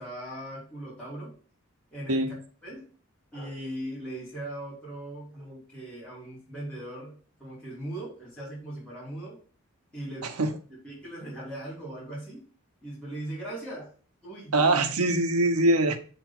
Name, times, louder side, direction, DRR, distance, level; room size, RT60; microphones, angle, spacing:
voice 1, 0.0-1.4 1.9-2.3 2.6-2.9 3.3-9.4 9.9-10.3 10.8-12.5 12.8-13.9 14.2-14.7, right 1 dB, 5° left, -11 dB, 2.9 m, -39 dB
voice 2, 10.2-10.5 14.5-16.0, right 2 dB, 85° right, 6 dB, 0.8 m, -23 dB
7.1 x 3.5 x 4.2 m, 0.42 s
head